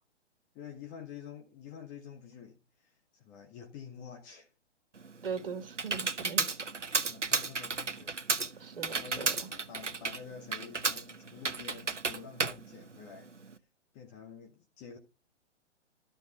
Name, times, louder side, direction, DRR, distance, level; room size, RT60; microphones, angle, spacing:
voice 1, 0.5-4.5 7.1-8.2 8.5-8.6 8.9-13.3 13.9-15.0, left 7 dB, 15° left, 0.8 m, -48 dB
Computer keyboard, 5.0-13.5, right 4 dB, 80° right, 1.1 m, -33 dB
voice 2, 5.2-6.5 8.6-9.5, right 6 dB, 50° right, 2.0 m, -40 dB
12.5 x 4.5 x 5.6 m
figure-of-eight pair, 130°, 36 cm